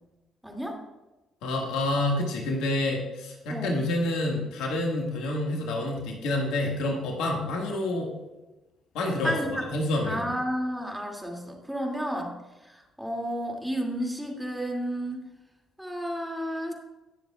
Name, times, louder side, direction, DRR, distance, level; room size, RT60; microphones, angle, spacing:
voice 1, 0.4-0.8 3.5-3.8 9.2-9.6 10.1-12.4 12.7-15.3 15.8-16.7, equal, 5° right, 1 dB, 2.4 m, -31 dB
voice 2, 1.4-8.1 8.9-10.3, left 1 dB, 75° left, 0 dB, 1.8 m, -28 dB
18.5 x 7.2 x 2.4 m, 1.1 s
hypercardioid pair, 50°, 0 cm